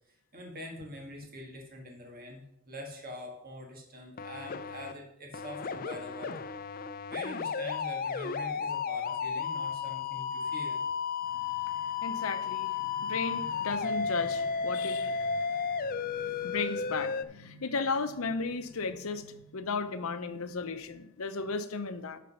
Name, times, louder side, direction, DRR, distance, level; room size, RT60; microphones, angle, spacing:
voice 1, 0.1-6.5 7.1-10.8, left 1 dB, 45° right, 1 dB, 2.0 m, -44 dB
sound 1, 4.2-4.9 5.3-17.2, left 6 dB, 40° left, 0.4 m, -33 dB
voice 2, 11.7-22.2, left 4 dB, 70° left, 9 dB, 0.7 m, -35 dB
11.5 x 4.3 x 5.6 m, 0.79 s
head